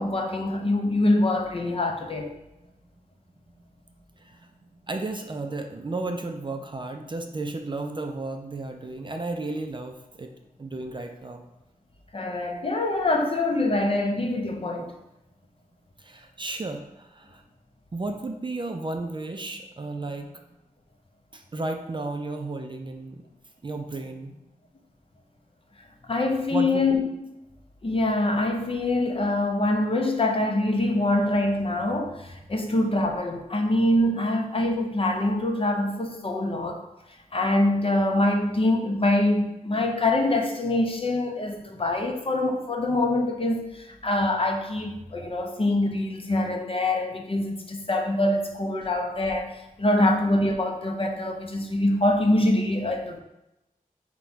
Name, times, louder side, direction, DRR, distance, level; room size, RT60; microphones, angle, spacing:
voice 1, 0.0-2.4 12.1-14.9 26.1-27.1 27.8-36.8 37.3-49.5 49.8-53.2, left 1 dB, 40° left, 3 dB, 0.5 m, -24 dB
voice 2, 4.9-10.3 10.6-11.4 16.0-17.4 17.9-20.3 21.3-23.2 23.6-24.4 26.5-26.9 32.5-32.6, right 2 dB, 35° right, 4 dB, 0.4 m, -33 dB
4.0 x 2.2 x 4.4 m, 0.91 s
wide cardioid pair, 85°, 14 cm